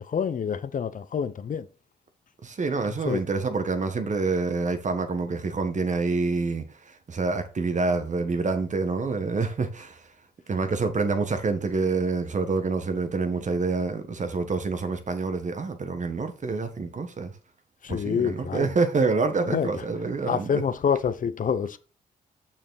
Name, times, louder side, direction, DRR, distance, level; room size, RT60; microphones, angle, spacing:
voice 1, 0.0-1.7 3.1-3.2 17.8-18.7 19.5-19.7 20.3-21.8, left 7 dB, 50° left, 0.8 m, -27 dB
voice 2, 2.4-10.1 10.5-17.3 17.9-20.6, right 4 dB, 45° right, 1.7 m, -27 dB
6.5 x 6.3 x 4.0 m
cardioid pair, 70°, 17 cm